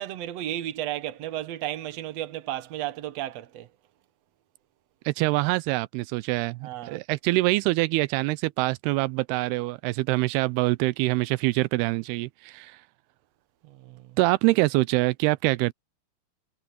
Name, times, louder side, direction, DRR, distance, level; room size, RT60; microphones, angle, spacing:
voice 1, 0.0-3.7 6.6-7.0 13.6-14.2, right 13 dB, 55° right, 1.9 m, -33 dB
voice 2, 5.1-12.8 14.2-15.7, right 21 dB, 90° right, 2.6 m, -25 dB
omnidirectional pair, 4.5 m